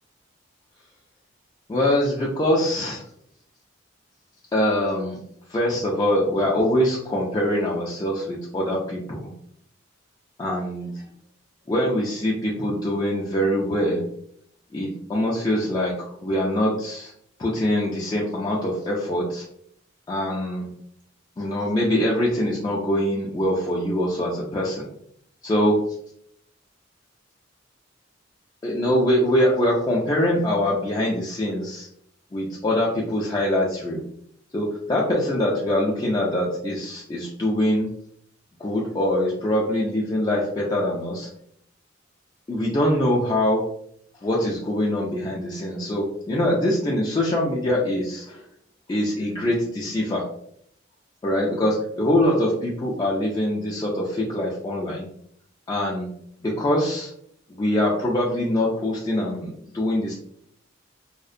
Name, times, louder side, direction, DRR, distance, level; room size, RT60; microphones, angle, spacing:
voice 1, 1.7-3.0 4.5-5.2 5.5-9.3 10.4-11.1 11.7-14.1 14.7-17.1 17.4-19.4 20.1-20.7 21.4-24.9 25.4-26.0 28.6-31.9 32.3-34.1 34.5-37.9 38.6-41.3 42.5-43.7 44.2-48.4 48.9-50.3 51.2-55.0 55.7-56.1 56.4-57.1 57.5-60.1, left 1 dB, 20° left, -4 dB, 0.3 m, -23 dB
2.4 x 2.0 x 2.5 m, 0.68 s
head